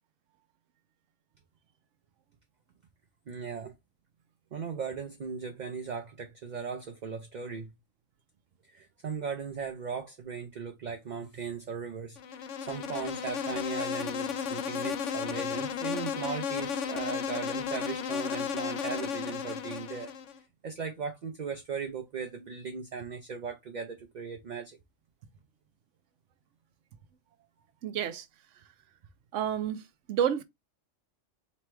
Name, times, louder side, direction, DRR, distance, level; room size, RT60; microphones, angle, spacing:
voice 1, 3.3-3.7 4.5-7.7 8.7-12.2 12.6-20.1 20.6-24.8, right 6 dB, 50° right, 0.5 m, -38 dB
Insect, 12.2-20.4, left 7 dB, 75° left, 1.0 m, -34 dB
voice 2, 27.8-28.3 29.3-30.4, right 9 dB, 70° right, 0.9 m, -30 dB
4.1 x 2.2 x 4.5 m
omnidirectional pair, 1.3 m